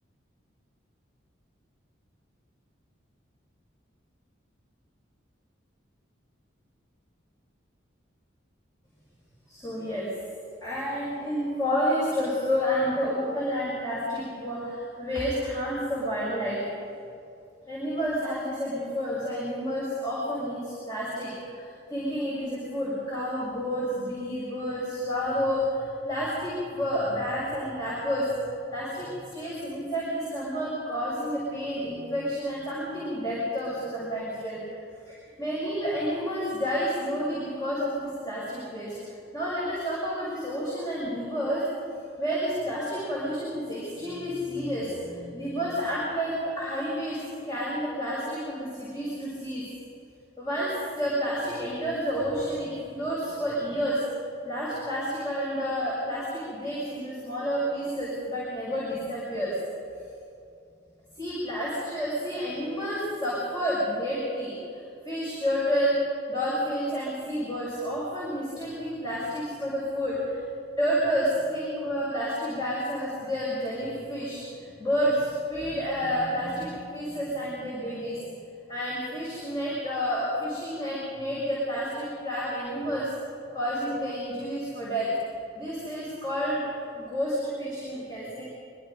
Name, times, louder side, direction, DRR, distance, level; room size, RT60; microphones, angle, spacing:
voice 1, 9.5-10.1 10.6-16.6 17.7-34.6 35.1-39.0 39.3-41.6 42.2-47.2 47.4-49.6 50.4-54.0 54.4-59.6 61.1-65.9 66.3-70.4 70.8-78.2 78.7-83.1 83.5-85.1 85.5-86.6 86.9-88.4, equal, 20° left, -8 dB, 6.7 m, -30 dB
26.0 x 24.5 x 5.4 m, 2.5 s
head